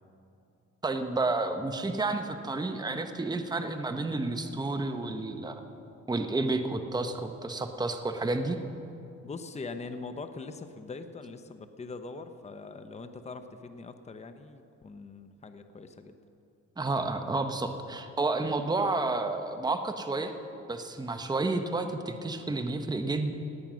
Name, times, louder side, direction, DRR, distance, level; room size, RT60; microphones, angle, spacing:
voice 1, 0.8-5.6 6.1-8.6 16.8-20.3 20.7-23.3, right 2 dB, 15° right, 7 dB, 0.9 m, -30 dB
voice 2, 9.2-16.2, left 3 dB, 20° left, 9 dB, 0.8 m, -42 dB
18.0 x 9.0 x 6.2 m, 2.7 s
cardioid pair, 90°, 30 cm